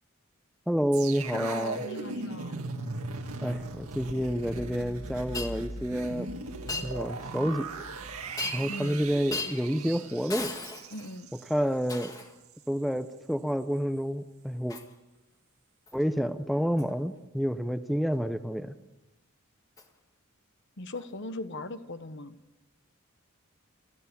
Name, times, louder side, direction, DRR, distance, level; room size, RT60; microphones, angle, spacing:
voice 1, 0.7-1.8 3.4-6.3 6.8-7.7 8.5-10.5 11.5-12.1 12.7-14.8 15.9-18.7, equal, ahead, 10 dB, 0.6 m, -29 dB
sound 1, 0.9-12.1 12.4-12.6, right 3 dB, 90° right, 1.9 m, -39 dB
voice 2, 1.3-2.6 8.7-9.1 10.9-11.3 20.8-22.4, left 2 dB, 55° left, 11 dB, 1.1 m, -39 dB
Shatter, 5.3-5.5 6.7-6.9 8.4-8.8 9.3-9.6 10.3-11.2 11.9-12.3 14.7-14.9 15.9-16.0 16.8-16.9 19.8-19.9 20.9-21.1, left 3 dB, 15° left, 1.8 m, -36 dB
28.5 x 13.0 x 7.0 m, 1.0 s
head